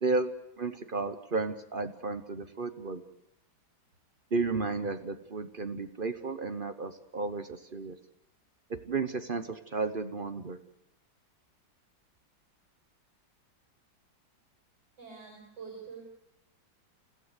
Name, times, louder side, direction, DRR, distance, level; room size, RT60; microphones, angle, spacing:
voice 1, 0.0-0.3 0.6-3.0 4.3-8.0 8.7-10.6, right 3 dB, 40° right, 10 dB, 0.8 m, -33 dB
voice 2, 15.0-16.0, right 5 dB, 65° right, 1 dB, 6.6 m, -45 dB
27.5 x 16.0 x 8.1 m, 0.85 s
omnidirectional pair, 2.1 m